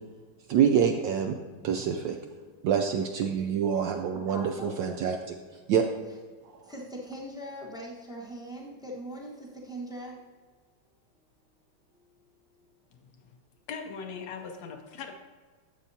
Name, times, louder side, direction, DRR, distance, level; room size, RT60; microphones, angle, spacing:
voice 1, 0.5-1.3 1.6-2.2 2.6-5.4 5.7-5.9, right 8 dB, 75° right, 4 dB, 1.1 m, -26 dB
voice 2, 4.3-4.7 6.6-10.2 11.9-12.7, equal, 5° right, -3 dB, 0.5 m, -41 dB
voice 3, 13.7-15.2, left 5 dB, 80° left, 4 dB, 0.8 m, -39 dB
11.5 x 7.3 x 2.7 m, 1.4 s
omnidirectional pair, 2.4 m